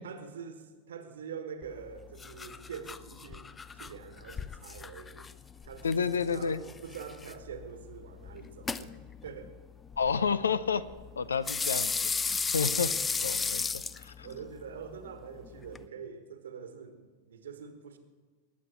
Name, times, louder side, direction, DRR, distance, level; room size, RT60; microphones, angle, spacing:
voice 1, 0.0-5.3 5.6-9.5 14.2-18.0, right 6 dB, 65° right, 8 dB, 1.4 m, -45 dB
sound 1, 1.6-15.9, left 5 dB, 15° left, 0.4 m, -37 dB
voice 2, 5.8-6.6 10.0-10.8 11.2-12.1 12.5-12.9 13.2-14.1, left 6 dB, 70° left, 17 dB, 0.5 m, -30 dB
19.5 x 8.4 x 4.6 m, 1.5 s
figure-of-eight pair, 90°, 0 cm